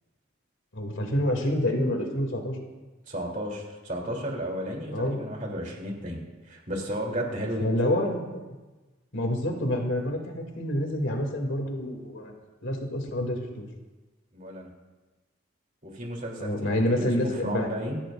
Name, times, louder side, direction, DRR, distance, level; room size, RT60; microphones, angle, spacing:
voice 1, 0.7-2.6 4.9-5.2 7.6-8.2 9.1-12.3 12.6-13.7 16.4-17.8, left 1 dB, 70° left, 2 dB, 2.7 m, -27 dB
voice 2, 3.1-6.2 6.4-7.7 14.3-14.7 15.8-18.0, equal, 40° right, 0 dB, 3.3 m, -33 dB
23.5 x 16.0 x 2.6 m, 1.2 s
head